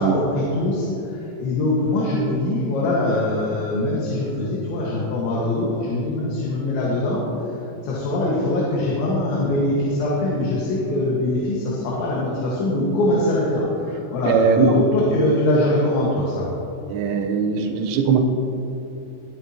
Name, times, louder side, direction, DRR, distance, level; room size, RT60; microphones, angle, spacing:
voice 1, 0.0-7.2 7.8-16.4, left 1 dB, 70° left, -5 dB, 4.0 m, -22 dB
voice 2, 14.3-14.8 16.9-18.2, right 5 dB, 75° right, 3 dB, 3.1 m, -19 dB
22.0 x 9.8 x 3.0 m, 2.9 s
omnidirectional pair, 5.6 m